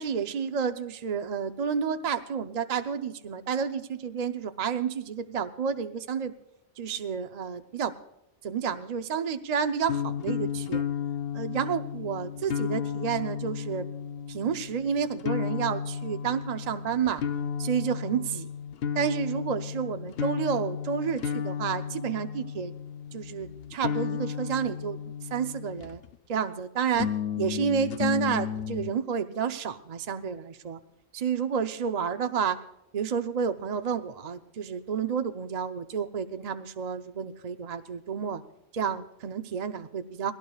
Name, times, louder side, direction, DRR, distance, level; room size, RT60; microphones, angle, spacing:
voice 1, 0.0-6.3 6.8-8.0 8.4-10.8 11.3-13.9 14.3-17.2 17.6-18.5 18.9-22.7 23.1-26.0 26.3-30.8 31.1-32.6 32.9-38.4 38.7-40.3, right 7 dB, 45° right, 8 dB, 0.7 m, -30 dB
sound 1, 9.8-26.1 26.9-28.9, left 7 dB, 65° left, 0.8 m, -33 dB
20.5 x 17.0 x 2.3 m, 0.82 s
omnidirectional pair, 1.1 m